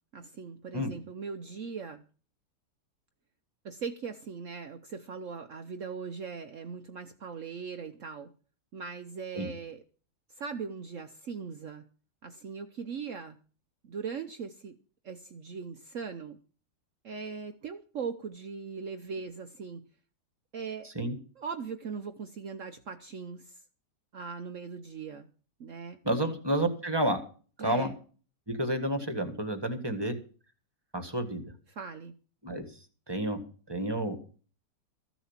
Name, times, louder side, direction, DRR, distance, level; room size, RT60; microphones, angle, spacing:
voice 1, 0.1-2.0 3.6-8.3 8.7-9.8 10.4-11.9 12.2-13.4 13.8-14.8 15.0-16.4 17.0-19.8 20.5-20.9 21.4-23.6 24.1-25.3 25.6-26.0 27.6-28.0 31.7-32.1, right 5 dB, 55° right, 7 dB, 1.0 m, -39 dB
voice 2, 20.8-21.2 26.0-27.2 27.6-27.9 28.5-30.1 30.9-31.4 32.4-32.7 33.1-33.4 33.7-34.2, right 1 dB, 15° right, 7 dB, 1.5 m, -30 dB
14.5 x 7.1 x 7.3 m, 0.40 s
omnidirectional pair, 1.8 m